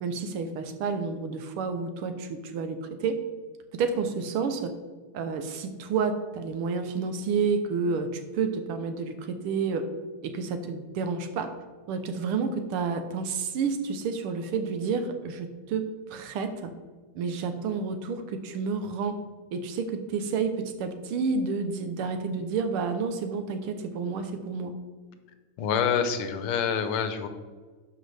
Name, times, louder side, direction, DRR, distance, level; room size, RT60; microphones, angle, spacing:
voice 1, 0.0-3.2 3.7-4.7 5.1-9.8 10.2-11.5 11.9-15.8 16.1-16.7 17.2-19.2 19.5-20.5 20.8-24.7, right 5 dB, 85° right, 8 dB, 1.7 m, -30 dB
voice 2, 25.6-27.3, left 7 dB, 85° left, 9 dB, 1.6 m, -26 dB
11.5 x 5.2 x 3.3 m, 1.4 s
omnidirectional pair, 2.4 m